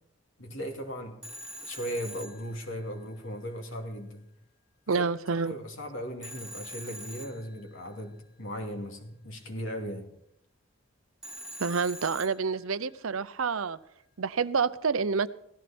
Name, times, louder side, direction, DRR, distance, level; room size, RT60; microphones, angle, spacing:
voice 1, 0.4-1.2 1.6-4.3 5.0-10.1, equal, 70° left, 3 dB, 2.7 m, -37 dB
Telephone, 1.2-3.2 6.2-8.0 11.2-12.9, equal, 5° right, 2.0 m, -44 dB
voice 2, 4.9-5.6 11.6-13.8 14.2-15.3, right 5 dB, 80° right, 16 dB, 0.7 m, -28 dB
17.0 x 14.5 x 4.4 m, 0.75 s
head